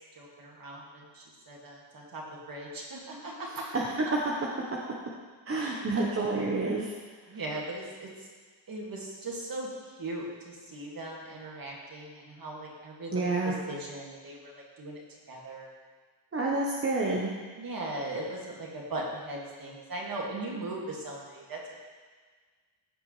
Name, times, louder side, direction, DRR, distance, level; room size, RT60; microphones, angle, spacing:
voice 1, 0.1-3.5 5.6-6.1 7.3-8.1 8.7-9.7 10.0-15.0 15.3-15.7 17.6-21.8, right 2 dB, 45° right, -2 dB, 2.4 m, -39 dB
voice 2, 5.5-6.9 13.1-13.5 16.3-17.3, right 3 dB, 30° right, -3 dB, 1.1 m, -28 dB
15.0 x 5.1 x 3.3 m, 1.5 s
cardioid pair, 80°, 47 cm